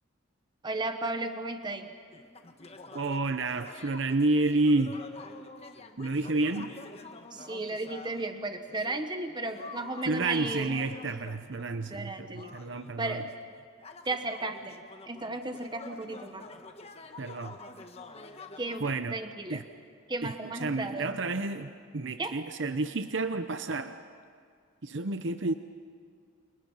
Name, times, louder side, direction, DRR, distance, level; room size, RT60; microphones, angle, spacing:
voice 1, 0.6-1.9 7.3-10.8 11.9-12.5 13.0-13.3 14.0-14.8 15.1-16.5 18.6-18.8 19.1-19.6 20.1-21.1 22.2-22.4, right 2 dB, 20° right, 7 dB, 1.2 m, -34 dB
sound 1, 2.1-8.3 8.7-19.0, left 3 dB, 30° left, 1.4 m, -48 dB
voice 2, 2.9-5.0 6.0-6.7 10.1-13.2 17.2-17.6 18.8-19.2 19.5-19.6 20.2-20.3 20.6-23.9 24.8-25.5, right 2 dB, 60° right, 9 dB, 0.8 m, -30 dB
30.0 x 28.5 x 5.6 m, 2.2 s
head